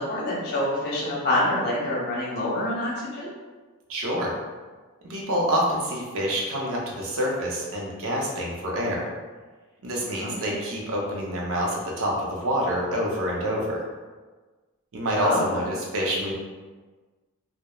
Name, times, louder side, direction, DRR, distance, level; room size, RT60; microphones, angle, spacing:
voice 1, 0.0-3.3 10.2-10.5 15.2-15.6, left 1 dB, 45° left, -7 dB, 0.8 m, -27 dB
voice 2, 3.9-4.3 5.1-9.1 9.8-13.8 14.9-16.3, equal, 65° right, -2 dB, 0.6 m, -27 dB
2.9 x 2.0 x 2.2 m, 1.3 s
head